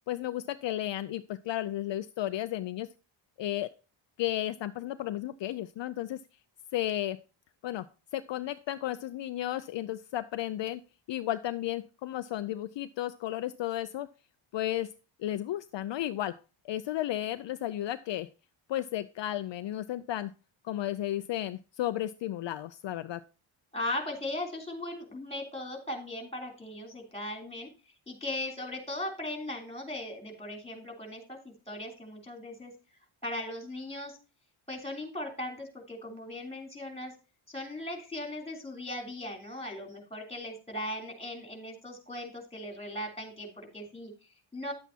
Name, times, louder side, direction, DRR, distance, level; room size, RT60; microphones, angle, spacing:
voice 1, 0.1-2.9 3.4-3.7 4.2-6.2 6.7-7.2 7.6-7.9 8.1-10.8 11.1-14.1 14.5-14.9 15.2-16.4 16.6-18.3 18.7-20.3 20.6-23.2, left 13 dB, 60° left, 11 dB, 0.5 m, -33 dB
voice 2, 23.7-27.7 28.1-32.7 33.2-34.2 34.7-37.1 37.5-44.7, left 1 dB, 10° left, 1 dB, 3.2 m, -38 dB
10.5 x 8.1 x 2.8 m, 0.32 s
cardioid pair, 125°, 49 cm